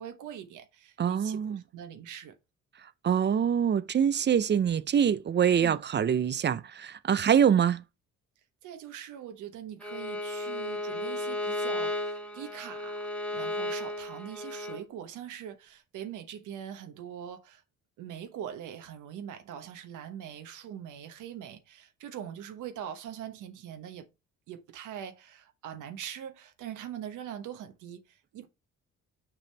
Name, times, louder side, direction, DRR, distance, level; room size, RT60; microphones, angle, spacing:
voice 1, 0.0-2.3 5.5-5.8 8.6-17.6 18.0-24.1 24.5-28.5, right 9 dB, 85° right, 1.1 m, -42 dB
voice 2, 1.0-1.6 3.0-7.8, right 8 dB, 35° right, 0.5 m, -25 dB
Bowed string instrument, 9.8-14.8, left 1 dB, 5° left, 1.0 m, -34 dB
6.0 x 5.0 x 3.3 m
cardioid pair, 90°, 30 cm